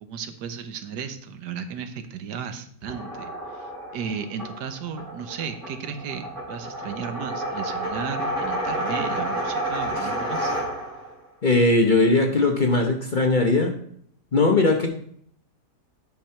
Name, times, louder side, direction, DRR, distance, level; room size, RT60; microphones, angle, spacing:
voice 1, 0.0-10.5, right 6 dB, 80° right, 9 dB, 1.4 m, -35 dB
sound 1, 2.8-11.1, right 1 dB, 30° right, 3.0 m, -30 dB
voice 2, 11.4-13.7 14.3-14.9, left 2 dB, 40° left, 3 dB, 0.8 m, -19 dB
9.3 x 5.5 x 4.3 m, 0.65 s
omnidirectional pair, 1.8 m